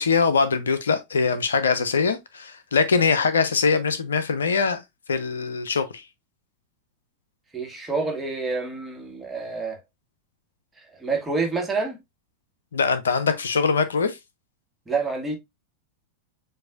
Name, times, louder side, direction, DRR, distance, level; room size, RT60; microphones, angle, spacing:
voice 1, 0.0-4.8 5.1-6.0 12.7-14.2, left 5 dB, 70° left, 0.5 m, -22 dB
voice 2, 7.5-9.8 11.0-12.0 14.9-15.4, right 4 dB, 10° right, 1.5 m, -27 dB
7.6 x 2.6 x 2.4 m
figure-of-eight pair, 90°, 0 cm